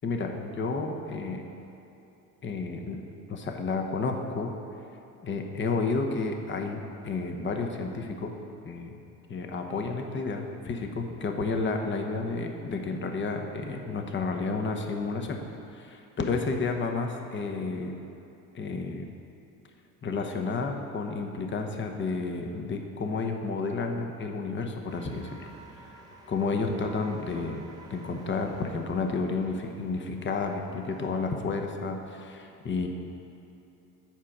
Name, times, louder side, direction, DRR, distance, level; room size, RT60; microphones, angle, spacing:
voice 1, 0.0-1.4 2.4-3.0 3.3-4.5 5.2-8.3 8.6-9.0 9.3-15.4 15.7-18.0 18.5-19.1 20.0-25.5 26.3-27.6 27.9-32.9, left 4 dB, 30° left, 4 dB, 0.9 m, -31 dB
sound 1, 24.9-31.4, right 2 dB, 10° right, 1.2 m, -50 dB
7.4 x 5.1 x 7.2 m, 2.8 s
supercardioid pair, 90°, 39 cm